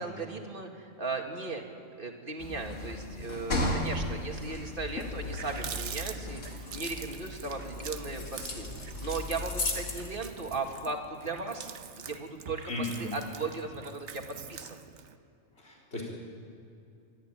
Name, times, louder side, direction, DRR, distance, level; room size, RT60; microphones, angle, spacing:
voice 1, 0.0-1.6 2.0-8.7 9.0-11.7 12.0-14.2 14.5-14.8, right 3 dB, 40° right, 3 dB, 2.1 m, -37 dB
sound 1, 2.4-10.1, left 1 dB, 70° left, 2.5 m, -36 dB
Water tap faucet, 4.7-4.8 5.1-15.2, right 7 dB, 65° right, 1.1 m, -44 dB
voice 2, 12.7-13.1 15.6-16.0, left 2 dB, 50° left, -3 dB, 4.0 m, -35 dB
23.5 x 13.0 x 9.0 m, 2.6 s
omnidirectional pair, 1.4 m